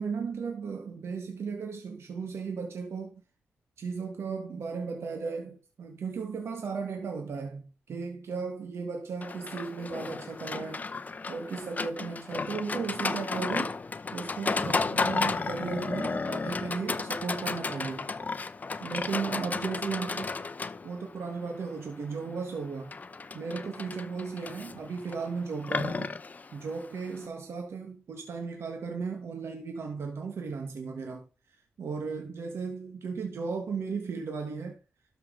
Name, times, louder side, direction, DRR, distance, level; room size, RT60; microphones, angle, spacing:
voice 1, 0.0-3.2 3.8-10.8 11.3-13.8 14.1-18.1 18.8-20.3 20.8-22.9 23.3-26.2 26.5-34.8, right 5 dB, 70° right, 1.6 m, -35 dB
Livestock farm animals working animals, 9.2-27.2, left 4 dB, 35° left, 0.7 m, -34 dB
12.5 x 6.1 x 3.9 m
cardioid pair, 80°, 5 cm